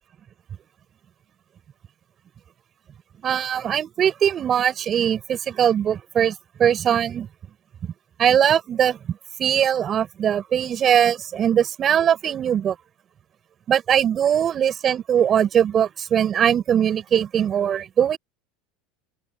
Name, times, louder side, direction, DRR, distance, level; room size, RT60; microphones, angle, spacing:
voice 1, 3.2-7.3 8.2-12.7 13.7-18.2, right 9 dB, 35° right, 5.0 m, -21 dB
open air
supercardioid pair, 100°, 0 cm